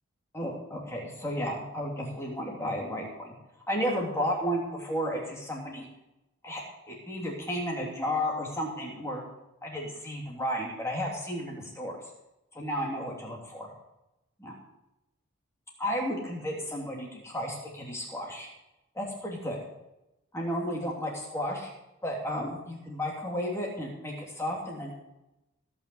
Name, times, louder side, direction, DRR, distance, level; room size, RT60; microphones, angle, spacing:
voice 1, 0.3-3.3 3.7-5.8 6.4-6.6 6.9-9.2 9.6-12.0 12.5-13.7 14.4-14.5 15.8-18.5 18.9-19.6 20.3-21.7 22.0-24.9, equal, 15° left, -2 dB, 3.1 m, -33 dB
17.0 x 6.2 x 7.9 m, 0.92 s
head